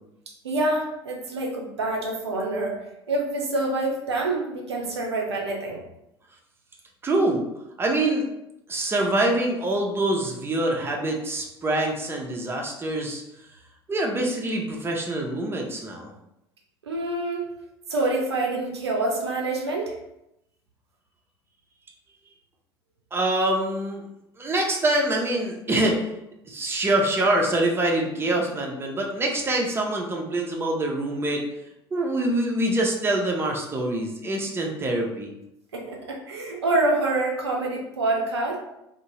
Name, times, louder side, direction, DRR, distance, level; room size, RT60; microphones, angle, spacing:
voice 1, 0.4-2.8 3.1-5.8 16.8-17.5 17.9-19.9 35.7-38.6, right 2 dB, 80° right, -1 dB, 0.5 m, -26 dB
voice 2, 7.0-7.4 7.8-8.3 8.7-13.2 13.9-16.1 23.1-24.0 24.4-26.1 26.5-31.4 31.9-35.3, right 1 dB, 15° right, 0 dB, 0.6 m, -25 dB
2.6 x 2.1 x 3.0 m, 0.85 s
figure-of-eight pair, 65°, 14 cm